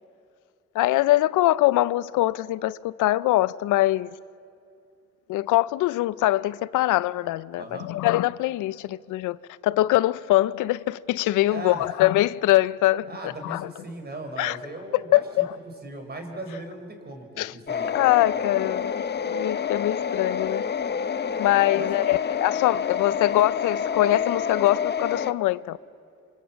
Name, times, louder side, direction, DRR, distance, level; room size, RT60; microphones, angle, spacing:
voice 1, 0.7-4.1 5.3-9.4 9.6-13.1 13.4-13.7 14.4-14.6 15.1-15.6 17.4-17.5 17.9-20.6 21.4-25.8, left 16 dB, 85° left, 0.5 m, -23 dB
voice 2, 7.6-7.9 11.5-11.9 13.1-15.4 15.8-17.9 21.7-22.0, right 2 dB, 35° right, 4.9 m, -38 dB
sound 1, 17.7-25.3, left 7 dB, 35° left, 0.8 m, -28 dB
26.0 x 26.0 x 7.4 m
cardioid pair, 90°, 30 cm